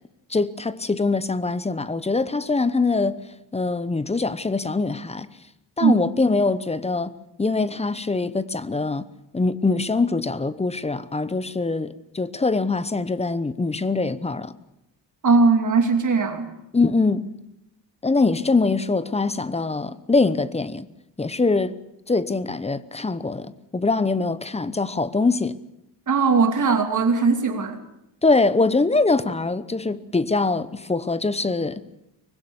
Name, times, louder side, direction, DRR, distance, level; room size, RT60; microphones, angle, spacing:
voice 1, 0.3-3.2 3.5-5.3 5.8-7.1 7.4-9.0 9.3-14.5 16.7-17.3 18.0-20.9 21.2-21.8 22.1-25.5 28.2-31.9, left 3 dB, 15° left, 0.9 m, -23 dB
voice 2, 15.2-16.5 26.1-27.8, right 4 dB, 40° right, 2.8 m, -19 dB
24.0 x 21.0 x 7.2 m
cardioid pair, 135°, 45 cm